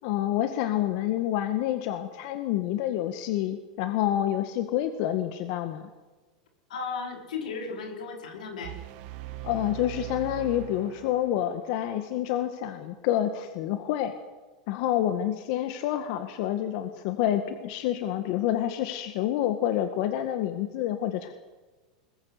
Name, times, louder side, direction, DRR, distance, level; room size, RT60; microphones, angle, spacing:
voice 1, 0.0-5.9 9.4-14.1 14.7-21.3, left 12 dB, 55° left, 8 dB, 1.8 m, -28 dB
voice 2, 6.7-8.8, left 5 dB, 85° left, 3 dB, 5.0 m, -35 dB
sound 1, 8.6-11.6, right 13 dB, 50° right, 2.4 m, -40 dB
22.0 x 20.0 x 8.1 m, 1.2 s
supercardioid pair, 135°, 4 cm